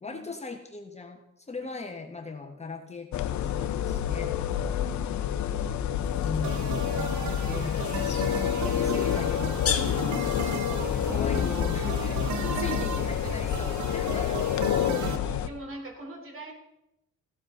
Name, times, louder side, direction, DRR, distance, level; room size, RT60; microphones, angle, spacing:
voice 1, 0.0-4.3 6.2-14.5, left 4 dB, 20° left, 4 dB, 1.3 m, -39 dB
sound 1, 3.1-15.5, left 9 dB, 70° left, 0.8 m, -28 dB
voice 2, 4.5-5.9 7.0-7.1 9.8-10.4 12.3-12.8 14.7-16.5, right 2 dB, 45° right, 2 dB, 3.7 m, -42 dB
sound 2, 6.0-12.1, left 7 dB, 50° left, 1.4 m, -38 dB
sound 3, 6.4-15.2, right 8 dB, 70° right, 1.0 m, -36 dB
15.0 x 12.0 x 3.8 m, 0.86 s
cardioid pair, 90°, 30 cm